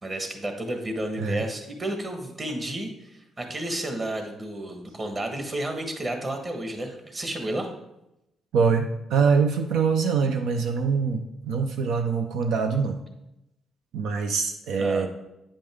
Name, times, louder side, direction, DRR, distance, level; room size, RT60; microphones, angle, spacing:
voice 1, 0.0-3.1 3.4-7.7 14.8-15.1, right 1 dB, 30° right, 4 dB, 1.4 m, -31 dB
voice 2, 8.5-13.0 13.9-15.1, right 5 dB, 85° right, 5 dB, 0.6 m, -24 dB
8.6 x 5.3 x 3.6 m, 0.88 s
cardioid pair, 90°, 0 cm